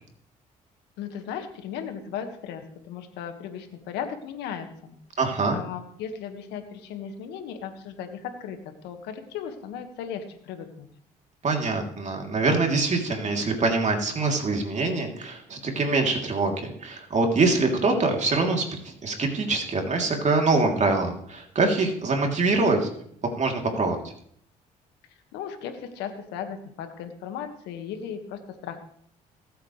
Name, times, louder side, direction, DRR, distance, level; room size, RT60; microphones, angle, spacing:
voice 1, 1.0-5.0 5.5-10.9 25.3-28.8, left 8 dB, 80° left, 7 dB, 1.7 m, -36 dB
voice 2, 5.2-5.6 11.4-22.9 23.4-24.1, right 3 dB, 45° right, 2 dB, 3.1 m, -24 dB
19.5 x 8.2 x 3.3 m, 0.65 s
supercardioid pair, 60°, 17 cm